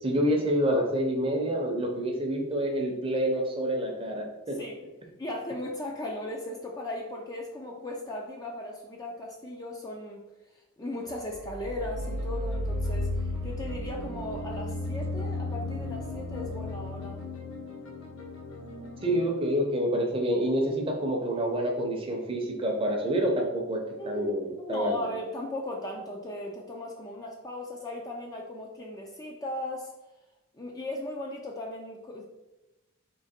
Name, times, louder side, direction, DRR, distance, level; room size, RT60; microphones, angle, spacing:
voice 1, 0.0-4.5 19.0-24.9, equal, 25° right, 1 dB, 0.7 m, -27 dB
voice 2, 5.2-10.2 10.8-17.2 24.0-24.3 24.6-29.9 30.5-32.2, left 1 dB, 15° left, -1 dB, 0.4 m, -37 dB
sound 1, 11.1-16.8, right 1 dB, 60° right, 0.3 m, -36 dB
sound 2, 12.0-19.3, left 3 dB, 60° left, 0.9 m, -36 dB
3.8 x 2.9 x 4.3 m, 0.99 s
head